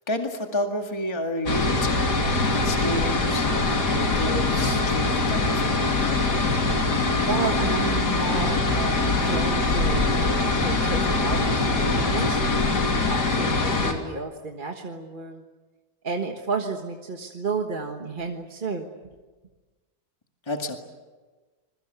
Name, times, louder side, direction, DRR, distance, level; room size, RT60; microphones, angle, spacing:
voice 1, 0.1-2.0 2.5-5.8 20.5-20.8, left 1 dB, 15° left, 3 dB, 2.1 m, -31 dB
sound 1, 1.5-13.9, left 3 dB, 90° left, 3.4 m, -23 dB
voice 2, 7.3-12.6 13.1-15.4 16.0-18.9, right 4 dB, 35° right, 3 dB, 1.6 m, -32 dB
28.0 x 22.0 x 8.1 m, 1.3 s
omnidirectional pair, 1.7 m